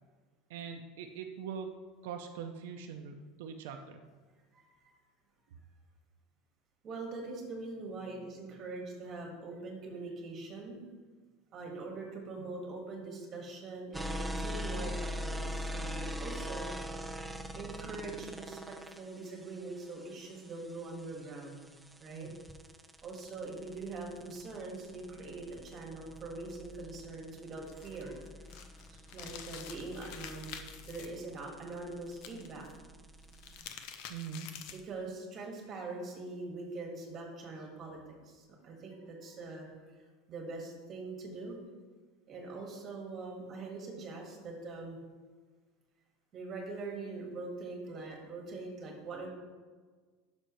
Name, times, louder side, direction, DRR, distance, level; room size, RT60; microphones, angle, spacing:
voice 1, 0.5-1.7 2.0-4.0 12.4-12.5 22.1-22.4 34.1-34.5, right 7 dB, 75° right, 4 dB, 0.6 m, -42 dB
voice 2, 4.5-4.9 6.8-10.8 11.5-16.7 17.5-21.7 22.0-22.3 23.0-28.2 28.9-30.6 30.9-32.6 33.6-33.7 34.7-39.7 40.3-41.6 42.3-45.0 46.3-49.3, right 3 dB, 25° right, 1 dB, 1.6 m, -43 dB
sound 1, 13.9-33.6, equal, 5° right, 0.4 m, -43 dB
sound 2, 27.7-31.1 32.1-32.7 33.2-34.9, left 8 dB, 50° left, 0.7 m, -47 dB
11.0 x 6.2 x 3.1 m, 1.4 s
supercardioid pair, 175°, 0 cm